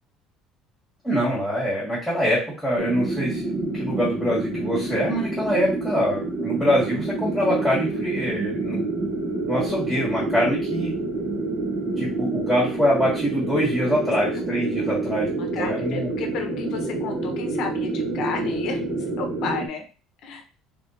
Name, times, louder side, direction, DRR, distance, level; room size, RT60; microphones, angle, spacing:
voice 1, 1.0-8.8 9.5-10.9 12.0-15.3 15.6-16.1, equal, ahead, -8 dB, 1.6 m, -24 dB
sound 1, 2.8-19.7, right 2 dB, 30° right, 0.8 m, -28 dB
voice 2, 15.4-18.8 19.2-19.8 20.2-20.4, left 5 dB, 50° left, 4 dB, 0.9 m, -32 dB
3.6 x 3.5 x 2.6 m, 0.33 s
cardioid pair, 170°, 0 cm